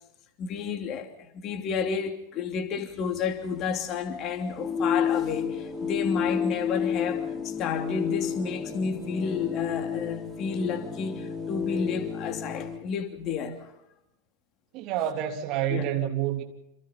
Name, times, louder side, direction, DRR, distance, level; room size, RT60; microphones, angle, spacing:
voice 1, 0.4-13.7 15.7-15.9, left 6 dB, 35° left, 2.9 m, -31 dB
sound 1, 2.9-12.8, left 7 dB, 10° left, 3.9 m, -31 dB
voice 2, 14.7-16.4, right 11 dB, 40° right, 3.3 m, -28 dB
28.0 x 27.5 x 4.2 m
figure-of-eight pair, 90°, 0 cm